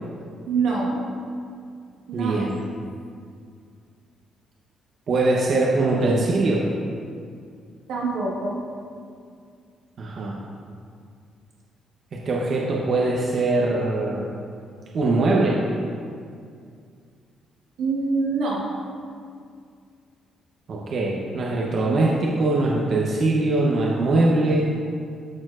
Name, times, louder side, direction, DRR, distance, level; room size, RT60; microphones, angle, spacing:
voice 1, 0.5-1.0 2.1-2.4 7.9-8.6 17.8-18.7, right 4 dB, 85° right, -4 dB, 1.4 m, -25 dB
voice 2, 2.1-2.5 5.1-6.6 10.0-10.4 12.1-14.3 14.9-15.6 20.7-24.7, right 2 dB, 55° right, -3 dB, 0.8 m, -22 dB
12.5 x 4.4 x 2.4 m, 2.3 s
cardioid pair, 90°, 0 cm